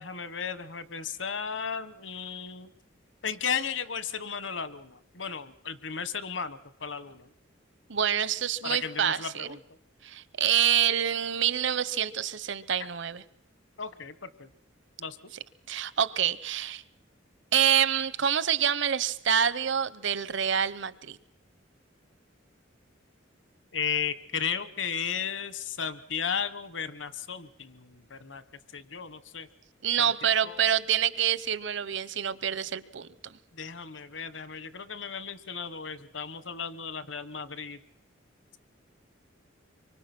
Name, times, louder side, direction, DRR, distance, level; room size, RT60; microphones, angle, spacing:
voice 1, 0.0-2.7 3.2-7.3 8.6-9.6 13.8-14.1 14.4-14.5 15.0-15.2 23.7-28.4 28.7-29.5 30.0-30.6 33.6-37.8, left 6 dB, 65° left, 14 dB, 1.1 m, -35 dB
voice 2, 7.9-9.5 10.0-13.2 15.7-16.8 17.5-21.2 29.8-33.1, right 9 dB, 65° right, 17 dB, 0.8 m, -27 dB
25.0 x 24.0 x 6.0 m, 0.72 s
head